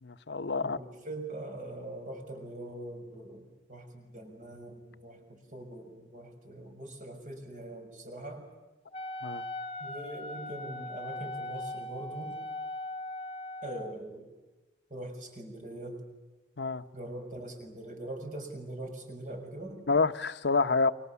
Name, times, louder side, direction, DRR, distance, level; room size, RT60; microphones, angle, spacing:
voice 1, 0.0-0.8 9.2-9.4 16.6-16.8 19.9-20.9, left 4 dB, 80° left, 1.0 m, -28 dB
voice 2, 0.6-8.5 9.8-12.4 13.6-14.3 14.9-16.0 16.9-19.8, right 1 dB, 45° right, 6.3 m, -42 dB
Wind instrument woodwind instrument, 8.9-14.0, left 1 dB, 30° left, 0.8 m, -39 dB
29.0 x 25.0 x 7.1 m
head